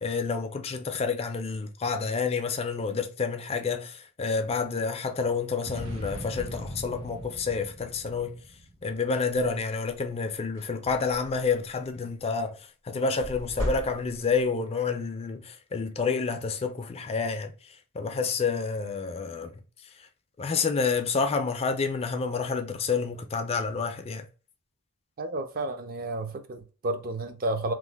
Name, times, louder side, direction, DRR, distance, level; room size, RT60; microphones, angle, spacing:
voice 1, 0.0-8.4 8.8-19.5 20.4-24.3, left 4 dB, 25° left, 0.4 m, -29 dB
sound 1, 5.6-9.2, equal, 90° right, 1.3 m, -40 dB
sound 2, 10.5-11.5 13.2-14.4, left 1 dB, 65° right, 1.7 m, -35 dB
voice 2, 25.2-27.7, right 2 dB, 40° right, 0.4 m, -31 dB
3.0 x 2.0 x 3.3 m
head